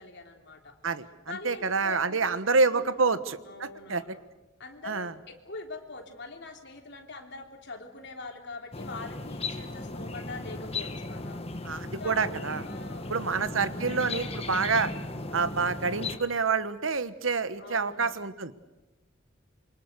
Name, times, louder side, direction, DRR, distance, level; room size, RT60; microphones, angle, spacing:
voice 1, 0.0-0.7 1.3-2.4 2.7-3.2 3.5-4.2 4.6-5.0 5.3-11.4 12.0-12.3 12.6-13.3 17.6-18.2, left 3 dB, 60° left, 3 dB, 3.4 m, -43 dB
voice 2, 0.8-4.0 4.9-5.1 11.6-12.6 13.1-14.9 15.3-18.5, right 4 dB, 75° right, 13 dB, 1.2 m, -27 dB
sound 1, 8.7-16.2, left 2 dB, 30° left, 1.5 m, -36 dB
27.0 x 24.5 x 6.7 m, 1.1 s
head